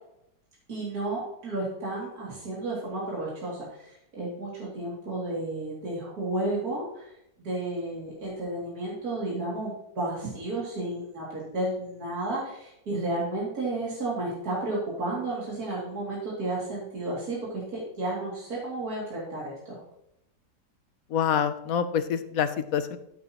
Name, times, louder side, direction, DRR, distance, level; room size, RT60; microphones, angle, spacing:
voice 1, 0.7-7.1 7.4-19.8, right 2 dB, 55° right, -6 dB, 3.1 m, -32 dB
voice 2, 21.1-23.0, left 8 dB, 65° left, 10 dB, 1.0 m, -26 dB
13.0 x 8.4 x 2.9 m, 0.82 s
omnidirectional pair, 1.9 m